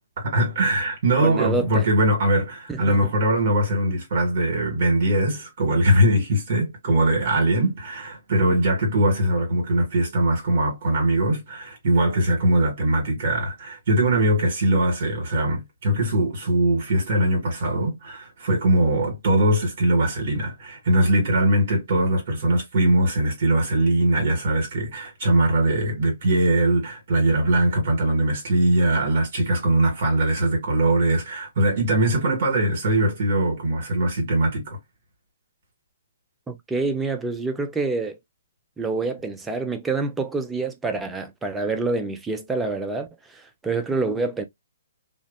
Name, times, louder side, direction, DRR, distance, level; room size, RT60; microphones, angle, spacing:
voice 1, 0.2-34.8, right 1 dB, 55° right, 1.4 m, -21 dB
voice 2, 1.2-1.9 2.7-3.0 36.5-38.2 38.8-44.4, right 3 dB, 10° right, 0.4 m, -27 dB
2.5 x 2.0 x 2.4 m
hypercardioid pair, 140°, 0 cm